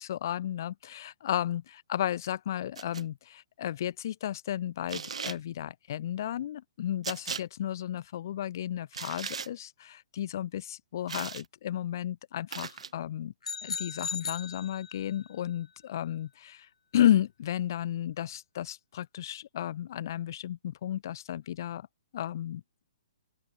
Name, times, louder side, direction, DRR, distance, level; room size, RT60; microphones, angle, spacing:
voice 1, 0.0-13.3 13.6-21.9 22.1-22.6, left 11 dB, 35° left, 1.2 m, -33 dB
sound 1, 2.8-3.0 4.9-5.4 7.0-7.4 8.9-9.5 11.1-11.5 12.5-12.9, right 6 dB, 80° right, 0.9 m, -37 dB
sound 2, 13.4-15.3, left 6 dB, 85° left, 4.4 m, -37 dB
open air
hypercardioid pair, 175°, 3 cm